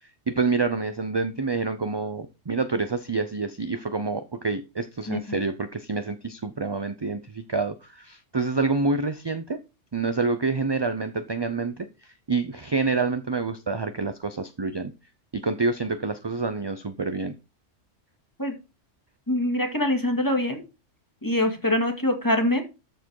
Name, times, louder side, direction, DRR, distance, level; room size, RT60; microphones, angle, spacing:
voice 1, 0.3-9.6 9.9-14.9 15.3-17.3, right 4 dB, 30° right, 10 dB, 0.5 m, -27 dB
voice 2, 5.1-5.4 18.4-18.6 19.3-20.6 21.2-22.6, left 1 dB, 15° left, 4 dB, 2.0 m, -24 dB
13.0 x 4.6 x 4.7 m, 0.28 s
omnidirectional pair, 1.3 m